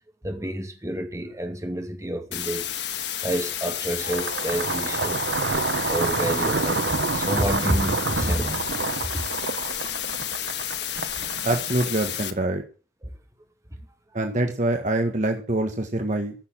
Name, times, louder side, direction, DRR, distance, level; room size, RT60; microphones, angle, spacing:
voice 1, 0.2-2.7 3.2-5.2 5.8-8.7 9.1-9.2 13.0-13.1, right 1 dB, 20° right, 2.5 m, -29 dB
sound 1, 2.3-12.3, left 11 dB, 70° left, 1.4 m, -31 dB
sound 2, 3.9-12.2, right 4 dB, 75° right, 0.8 m, -28 dB
voice 2, 11.4-12.6 14.1-16.3, right 2 dB, 45° right, 1.5 m, -25 dB
15.0 x 6.8 x 7.4 m
head